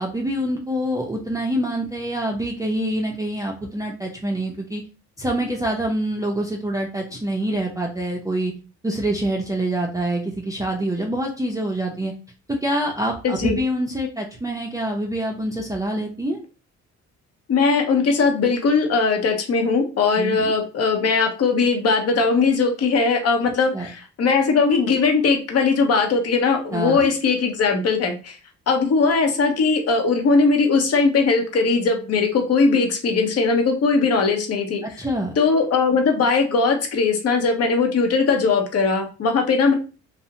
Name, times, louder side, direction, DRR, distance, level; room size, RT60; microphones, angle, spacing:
voice 1, 0.0-4.8 5.2-8.5 8.8-12.1 12.5-16.4 20.2-20.5 23.7-23.9 26.7-27.1 34.8-35.3, right 1 dB, 10° right, -1 dB, 0.4 m, -25 dB
voice 2, 13.2-13.6 17.5-28.4 28.7-34.8 35.4-39.7, left 4 dB, 55° left, 4 dB, 0.7 m, -19 dB
2.7 x 2.1 x 2.6 m, 0.34 s
cardioid pair, 90°, 30 cm